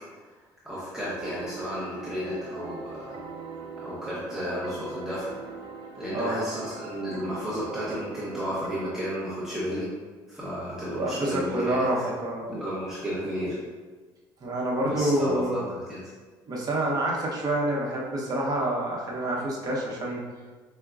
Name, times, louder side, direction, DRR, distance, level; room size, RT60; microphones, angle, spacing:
voice 1, 0.6-3.2 3.8-5.4 5.9-9.9 10.3-11.9 12.5-13.6 14.9-16.0, equal, 5° right, -9 dB, 0.7 m, -33 dB
sound 1, 1.2-8.9, right 4 dB, 55° right, 0.4 m, -41 dB
voice 2, 6.1-6.4 10.9-12.5 14.4-15.6 16.5-20.2, right 1 dB, 40° right, -3 dB, 0.8 m, -27 dB
4.7 x 2.1 x 2.4 m, 1.4 s
cardioid pair, 105°, 10 cm